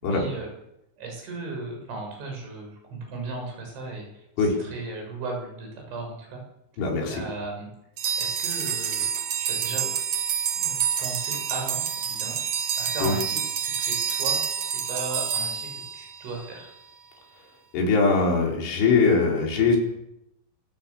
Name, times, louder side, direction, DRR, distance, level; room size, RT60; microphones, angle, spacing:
voice 1, 0.0-0.5 1.0-6.4 7.1-7.7 8.2-9.1 9.4-9.9 10.6-12.4 12.8-14.4 14.7-16.7, right 3 dB, 70° right, 1 dB, 9.4 m, -36 dB
voice 2, 6.8-7.2 13.0-13.1 17.7-19.8, left 4 dB, 75° left, 0 dB, 7.1 m, -21 dB
sound 1, 8.0-16.5, right 8 dB, 85° right, 1.4 m, -28 dB
25.5 x 16.5 x 7.3 m, 0.84 s
omnidirectional pair, 5.5 m